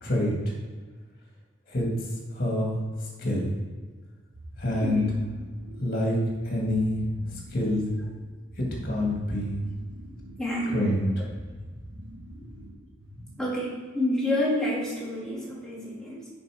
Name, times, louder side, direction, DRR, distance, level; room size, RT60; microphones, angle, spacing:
voice 1, 0.0-0.3 1.7-1.9 2.3-3.4 4.6-5.0 5.8-6.2 6.4-7.0 7.3-7.9 8.6-9.6 10.7-11.1, left 1 dB, 50° left, -2 dB, 2.0 m, -27 dB
sound 1, 4.3-13.6, equal, 80° right, 1.4 m, -45 dB
voice 2, 10.4-10.9 13.4-16.3, left 1 dB, 5° left, -6 dB, 2.4 m, -28 dB
7.1 x 5.2 x 5.0 m, 1.5 s
head